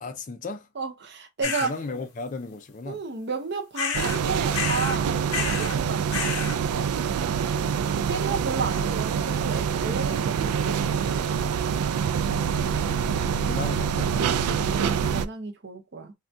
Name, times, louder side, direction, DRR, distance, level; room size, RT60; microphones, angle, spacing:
voice 1, 0.0-0.7 1.4-3.0 11.8-12.2 13.1-14.7, left 3 dB, 35° left, 0.4 m, -37 dB
voice 2, 0.8-1.7 2.9-6.6 8.1-11.2 14.5-16.1, right 4 dB, 50° right, 0.6 m, -33 dB
sound 1, 1.4-1.7 3.7-4.2 4.5-5.0 5.3-5.8 6.1-6.6, left 6 dB, 85° left, 0.7 m, -30 dB
sound 2, 3.9-15.3, right 7 dB, 90° right, 0.3 m, -26 dB
3.6 x 2.2 x 2.6 m
head